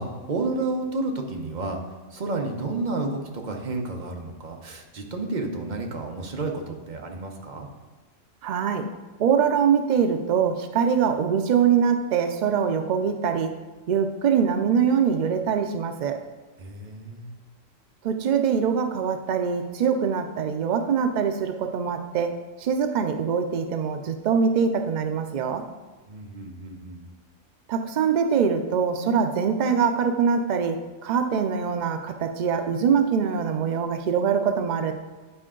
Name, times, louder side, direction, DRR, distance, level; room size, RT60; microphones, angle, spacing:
voice 1, 0.0-1.8 2.1-7.7 16.6-17.4 26.1-27.0, right 2 dB, 40° right, 3 dB, 0.9 m, -31 dB
voice 2, 8.4-8.9 9.2-13.5 13.9-16.2 18.0-25.7 27.7-34.9, right 7 dB, 80° right, 7 dB, 0.4 m, -23 dB
10.0 x 4.5 x 3.7 m, 1.3 s
omnidirectional pair, 1.3 m